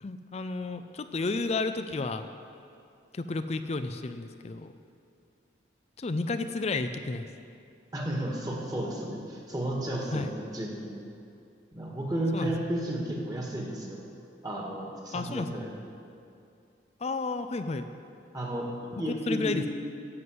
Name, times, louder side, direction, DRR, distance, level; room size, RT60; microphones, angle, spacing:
voice 1, 0.0-2.3 3.1-4.7 6.0-7.2 10.1-10.3 12.3-12.5 15.1-15.5 17.0-17.9 19.3-19.6, left 3 dB, 35° left, 9 dB, 0.4 m, -31 dB
voice 2, 7.9-11.1 11.7-14.0 14.4-15.7 18.3-18.7 19.0-19.5, right 1 dB, 20° right, -2 dB, 1.9 m, -33 dB
11.0 x 7.9 x 7.9 m, 2.5 s
head